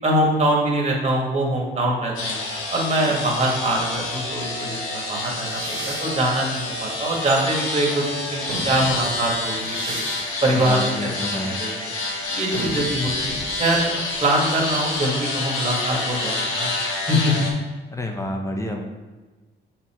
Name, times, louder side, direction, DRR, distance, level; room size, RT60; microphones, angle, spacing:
voice 1, 0.0-2.4 2.7-5.6 5.9-10.0 10.4-11.7 12.3-16.7 17.1-17.3, right 1 dB, 35° right, -2 dB, 2.0 m, -23 dB
sound 1, 2.2-17.5, left 2 dB, 80° left, 1.6 m, -28 dB
sound 2, 5.3-7.8 8.3-15.8, right 2 dB, 90° right, 1.5 m, -37 dB
voice 2, 10.5-11.5 17.9-18.8, left 1 dB, 15° left, 2 dB, 0.9 m, -29 dB
6.2 x 4.4 x 4.5 m, 1.2 s
cardioid pair, 90°, 20 cm